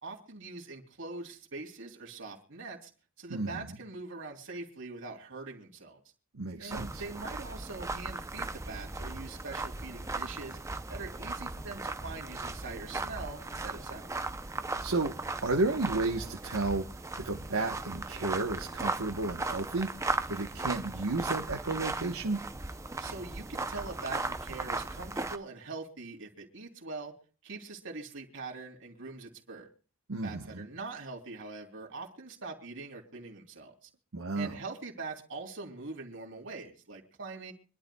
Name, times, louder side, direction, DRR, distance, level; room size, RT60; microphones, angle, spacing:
voice 1, 0.0-2.9 3.2-6.0 6.6-10.6 10.9-14.1 23.0-27.1 27.4-29.7 30.2-33.9 34.3-37.5, right 3 dB, 60° right, -1 dB, 3.3 m, -43 dB
voice 2, 3.3-3.7 6.3-7.0 14.8-15.2 15.4-16.9 17.2-19.9 20.3-22.4 30.1-30.6 34.1-34.5, right 3 dB, 75° right, 2 dB, 1.1 m, -32 dB
sound 1, 6.7-25.4, right 3 dB, 15° right, 0.5 m, -37 dB
25.5 x 12.0 x 2.3 m, 0.38 s
head